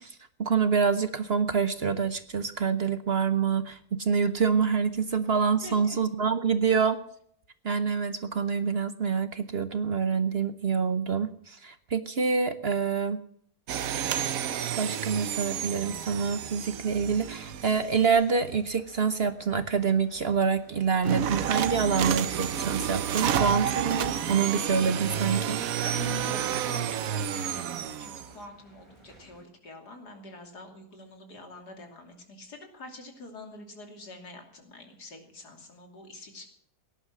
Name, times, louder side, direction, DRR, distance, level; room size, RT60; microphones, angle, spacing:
voice 1, 0.0-7.0 7.6-13.2 14.8-25.6, right 6 dB, 45° right, 11 dB, 0.9 m, -26 dB
voice 2, 5.6-6.0 25.8-36.5, left 3 dB, 85° left, 4 dB, 3.4 m, -45 dB
sound 1, 13.7-18.2 21.0-28.3, right 9 dB, 65° right, 1.2 m, -30 dB
sound 2, 13.8-29.4, right 1 dB, 15° right, 3.8 m, -55 dB
18.0 x 11.0 x 6.2 m, 0.65 s
omnidirectional pair, 1.7 m